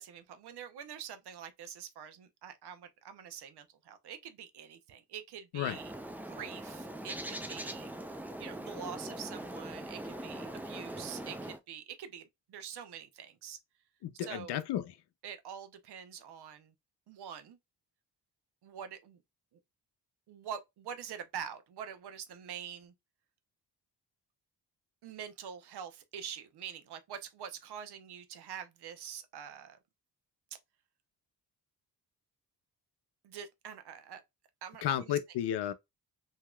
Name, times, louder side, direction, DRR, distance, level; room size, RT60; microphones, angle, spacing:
voice 1, 0.0-5.9 6.2-7.9 8.4-12.2 12.5-13.6 14.1-14.6 15.2-16.7 17.1-17.6 18.6-19.2 20.3-22.9 25.0-29.8 33.2-34.2 34.6-35.2, right 8 dB, 65° right, 0.8 m, -45 dB
Bird, 5.6-11.6, right 1 dB, 5° right, 0.5 m, -42 dB
voice 2, 14.0-14.9 34.8-35.7, left 11 dB, 70° left, 0.6 m, -33 dB
2.9 x 2.9 x 2.2 m
cardioid pair, 70°, 42 cm